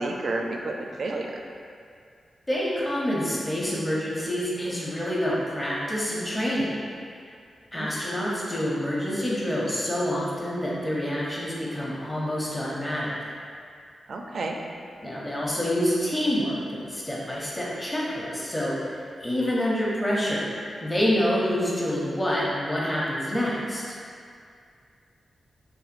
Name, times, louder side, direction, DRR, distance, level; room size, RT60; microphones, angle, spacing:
voice 1, 0.0-1.4 7.7-7.9 14.1-14.6, right 2 dB, 55° right, 1 dB, 0.4 m, -30 dB
voice 2, 2.5-6.8 7.7-13.1 15.0-20.5 20.8-23.8, equal, 10° left, -6 dB, 0.7 m, -27 dB
6.0 x 3.3 x 2.5 m, 2.3 s
wide cardioid pair, 145°, 0 cm